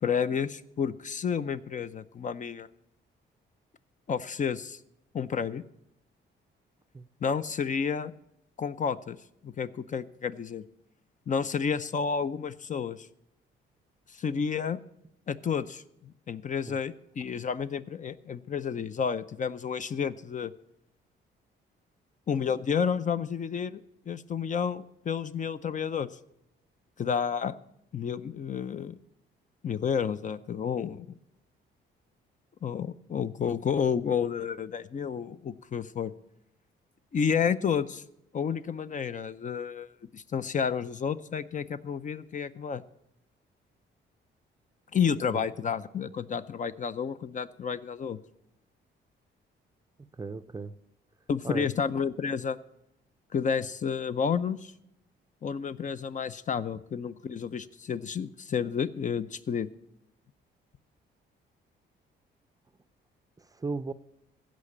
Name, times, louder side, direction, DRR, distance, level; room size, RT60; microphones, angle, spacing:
voice 1, 0.0-2.7 4.1-4.8 5.1-5.6 7.2-8.1 8.6-9.2 9.4-10.6 11.3-13.1 14.1-14.8 15.3-20.5 22.3-23.8 24.1-26.1 27.0-27.5 27.9-29.0 29.6-31.1 32.6-36.1 37.1-38.0 38.3-42.8 44.9-48.2 51.3-52.6 53.3-54.7 55.4-59.7, left 7 dB, 40° left, 0.5 m, -30 dB
voice 2, 50.0-50.7 51.4-51.7 63.4-63.9, right 3 dB, 20° right, 0.5 m, -36 dB
15.5 x 5.1 x 8.5 m
cardioid pair, 90°, 20 cm